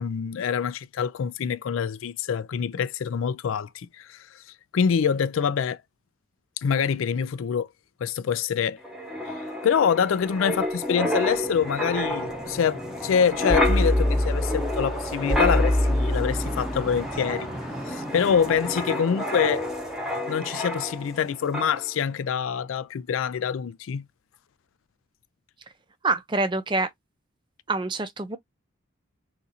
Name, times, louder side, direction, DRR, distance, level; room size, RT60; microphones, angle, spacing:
voice 1, 0.0-4.2 4.7-5.8 6.6-7.7 8.0-8.8 9.3-17.5 17.9-19.7 20.3-24.0, left 7 dB, 75° left, 0.4 m, -25 dB
Wind, 8.8-21.2 21.5-21.8, left 1 dB, 5° right, 0.9 m, -27 dB
voice 2, 26.0-26.9 27.7-28.4, right 3 dB, 25° right, 0.4 m, -26 dB
2.6 x 2.4 x 4.1 m
head